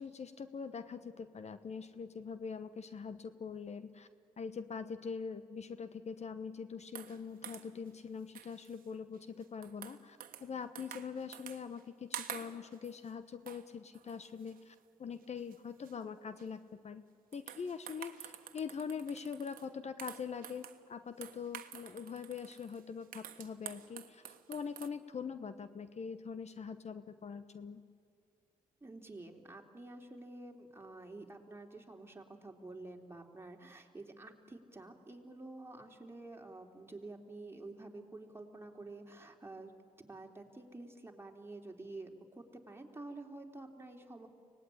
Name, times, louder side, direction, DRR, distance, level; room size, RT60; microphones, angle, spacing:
voice 1, 0.0-4.1 4.4-17.0 17.3-27.8, left 6 dB, 50° left, 12 dB, 1.1 m, -43 dB
Ping-pong, 6.9-7.9 8.4-8.9 9.1-10.5 10.8-11.9 12.1-13.1 13.5-13.7 13.9-14.8 15.2-15.6 15.8-16.0 16.4-16.5 17.3-19.7 20.0-20.8 21.2-24.9, right 10 dB, 75° right, 1.4 m, -49 dB
voice 2, 28.8-39.7 40.0-44.3, right 2 dB, 15° right, 2 dB, 3.4 m, -49 dB
24.5 x 18.5 x 9.9 m, 2.1 s
supercardioid pair, 60°, 15 cm